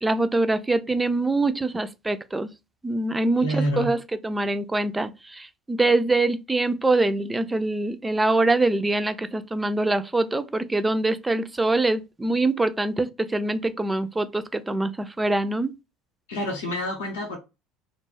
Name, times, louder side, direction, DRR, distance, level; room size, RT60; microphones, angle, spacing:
voice 1, 0.0-2.5 2.8-4.0 4.2-15.7, right 2 dB, 15° right, 0.3 m, -24 dB
voice 2, 3.4-3.9 16.3-17.4, equal, 75° left, 0.6 m, -27 dB
2.3 x 2.0 x 3.2 m
hypercardioid pair, 70°, 0 cm